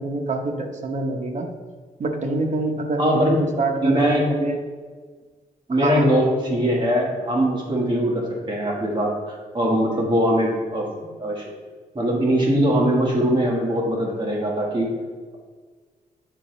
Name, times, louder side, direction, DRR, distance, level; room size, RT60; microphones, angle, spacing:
voice 1, 0.0-1.5 2.0-4.6 5.7-6.5, right 2 dB, 50° right, 3 dB, 0.9 m, -26 dB
voice 2, 3.0-3.4 3.8-4.3 5.7-10.9 11.2-11.4 11.9-14.9, equal, 30° right, -3 dB, 1.5 m, -21 dB
9.2 x 3.8 x 3.2 m, 1.5 s
wide cardioid pair, 115°, 16 cm